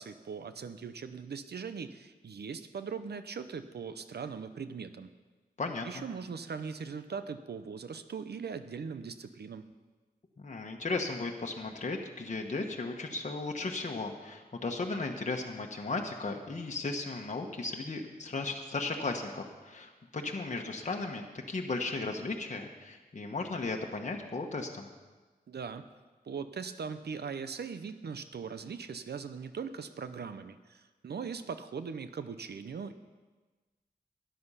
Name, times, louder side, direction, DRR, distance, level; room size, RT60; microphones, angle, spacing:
voice 1, 0.0-5.1 5.8-9.7 25.5-25.8 26.3-33.0, right 6 dB, 80° right, 10 dB, 0.7 m, -40 dB
voice 2, 5.6-6.0 10.4-24.9, left 3 dB, 45° left, 2 dB, 1.2 m, -36 dB
13.0 x 10.5 x 5.6 m, 1.3 s
wide cardioid pair, 95°, 17 cm